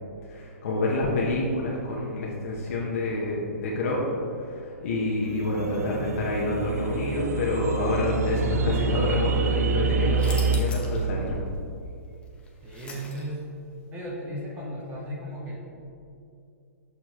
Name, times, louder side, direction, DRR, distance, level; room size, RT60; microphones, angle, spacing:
voice 1, 0.3-4.1 4.4-11.3, left 2 dB, 60° left, -4 dB, 1.0 m, -27 dB
sound 1, 5.3-10.6, right 5 dB, 75° right, 0.4 m, -27 dB
sound 2, 10.1-11.1 11.5-11.6 12.2-13.6, left 3 dB, 15° left, 0.8 m, -41 dB
voice 2, 12.6-13.4 13.9-15.6, equal, 20° right, -3 dB, 1.1 m, -35 dB
6.7 x 5.8 x 3.0 m, 2.6 s
hypercardioid pair, 130°, 9 cm